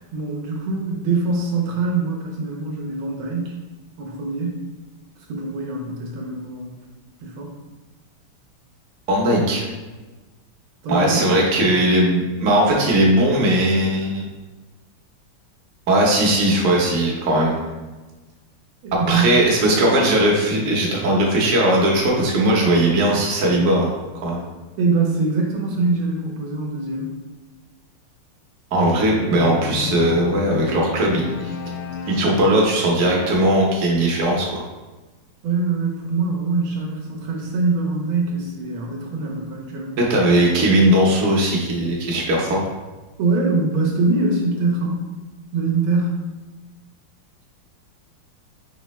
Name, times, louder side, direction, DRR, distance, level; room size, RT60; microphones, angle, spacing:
voice 1, 0.1-3.5 4.0-4.6 5.3-6.8 7.2-7.5 10.8-11.2 18.8-19.3 24.8-27.1 35.4-40.0 43.2-45.1 45.5-46.3, right 3 dB, 75° right, -1 dB, 1.5 m, -23 dB
voice 2, 9.1-9.7 10.9-14.2 15.9-17.6 18.9-23.9 24.2-24.4 28.7-31.2 32.1-34.6 40.0-42.6, right 1 dB, 50° right, -3 dB, 1.1 m, -18 dB
sound 1, 29.3-33.1, left 4 dB, 90° left, 1.5 m, -31 dB
5.1 x 3.3 x 3.1 m, 1.2 s
omnidirectional pair, 2.3 m